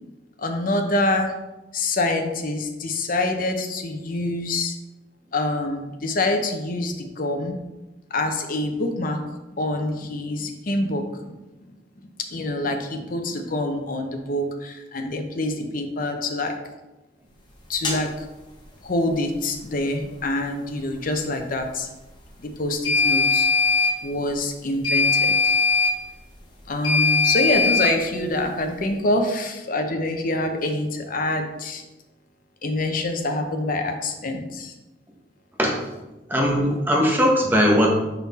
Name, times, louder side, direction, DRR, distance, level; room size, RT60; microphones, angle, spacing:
voice 1, 0.4-1.3 1.7-4.8 5.3-7.6 8.1-9.2 9.6-11.4 12.2-16.6 17.7-18.3 18.8-21.9 22.6-23.5 24.0-25.6 26.7-31.8 32.6-34.7, left 2 dB, 50° left, 4 dB, 0.7 m, -26 dB
sound 1, 17.8-18.0 22.8-23.9 24.8-25.9 26.8-27.9, left 4 dB, 25° left, 1.1 m, -20 dB
voice 2, 36.3-37.9, equal, 10° right, -1 dB, 1.0 m, -19 dB
5.5 x 4.2 x 4.1 m, 1.1 s
head